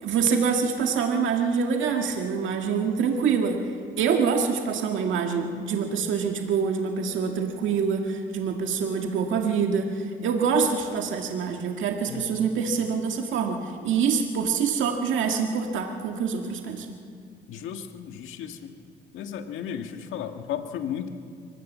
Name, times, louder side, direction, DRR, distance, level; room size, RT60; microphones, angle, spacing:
voice 1, 0.0-3.7 4.0-13.6 13.8-16.9, right 6 dB, 75° right, 3 dB, 1.9 m, -25 dB
voice 2, 17.5-18.7 19.1-21.1, left 9 dB, 85° left, 6 dB, 1.7 m, -34 dB
24.0 x 19.5 x 7.4 m, 2.2 s
cardioid pair, 90°, 20 cm